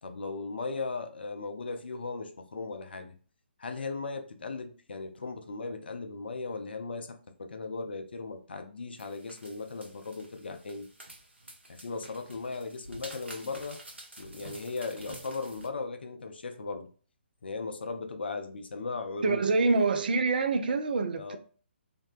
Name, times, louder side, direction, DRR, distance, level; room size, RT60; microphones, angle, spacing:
voice 1, 0.0-3.1 3.6-10.9 11.7-13.8 14.2-16.9 17.4-19.5 19.8-19.9 21.1-21.4, left 3 dB, 65° left, 0.4 m, -37 dB
sound 1, 9.0-15.7, right 2 dB, 80° right, 0.7 m, -49 dB
voice 2, 19.2-21.4, right 3 dB, 50° right, 0.4 m, -26 dB
2.7 x 2.1 x 2.3 m
figure-of-eight pair, 140°, 6 cm